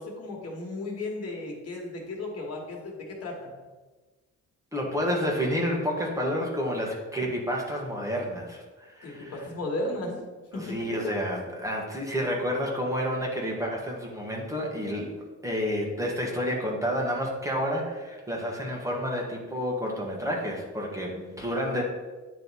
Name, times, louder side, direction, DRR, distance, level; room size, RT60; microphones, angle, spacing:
voice 1, 0.0-3.5 9.0-10.2 10.5-11.1, left 2 dB, 55° left, -1 dB, 1.7 m, -35 dB
voice 2, 4.7-9.4 10.5-15.1 15.4-21.8, equal, 10° right, -2 dB, 1.4 m, -30 dB
9.1 x 3.3 x 4.1 m, 1.3 s
cardioid pair, 90°, 30 cm